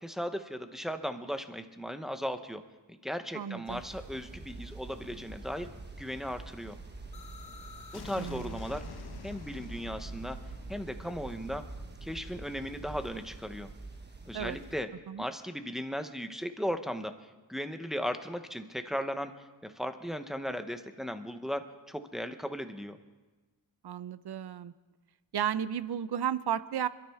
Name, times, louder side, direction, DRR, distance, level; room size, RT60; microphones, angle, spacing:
voice 1, 0.0-2.6 2.9-5.7 6.0-6.8 7.9-8.8 9.2-10.4 10.7-11.7 12.0-13.7 14.3-14.9 15.2-17.1 17.5-19.3 19.6-23.0, equal, ahead, 7 dB, 0.7 m, -36 dB
voice 2, 3.3-3.8 8.2-8.6 14.3-14.6 15.1-15.2 23.8-24.7 25.3-26.9, right 9 dB, 60° right, 15 dB, 0.6 m, -33 dB
sound 1, 3.7-14.8, right 3 dB, 25° right, 1.2 m, -45 dB
sound 2, 7.1-12.9, left 7 dB, 55° left, 0.8 m, -50 dB
26.5 x 12.5 x 3.5 m, 1.2 s
wide cardioid pair, 175°, 45 cm